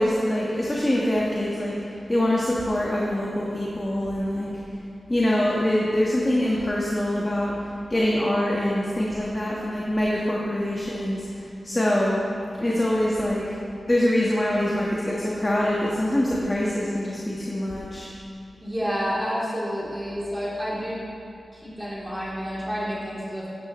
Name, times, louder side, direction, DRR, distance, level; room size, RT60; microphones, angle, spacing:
voice 1, 0.0-1.7 2.1-4.5 5.1-7.5 7.9-12.2 12.6-13.6 13.9-18.1, left 1 dB, 20° left, -5 dB, 1.5 m, -24 dB
voice 2, 18.6-21.0 21.5-23.5, equal, 10° right, -7 dB, 3.3 m, -29 dB
16.0 x 13.0 x 3.2 m, 2.8 s
wide cardioid pair, 165°, 0 cm